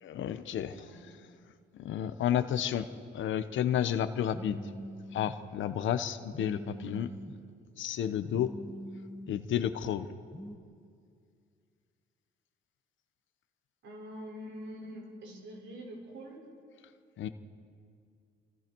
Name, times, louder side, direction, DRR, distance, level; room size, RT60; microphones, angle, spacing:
voice 1, 0.0-0.8 1.7-4.7 5.1-7.1 7.8-8.5 9.3-10.1 17.2-17.3, left 10 dB, 75° left, 10 dB, 1.0 m, -31 dB
voice 2, 0.6-1.1 13.8-16.5, equal, 70° right, -1 dB, 5.9 m, -45 dB
Telephone, 4.3-5.4 6.3-7.4 8.3-9.4 10.3-10.6, equal, ahead, 1.8 m, -43 dB
27.5 x 25.0 x 4.7 m, 2.3 s
cardioid pair, 90°, 20 cm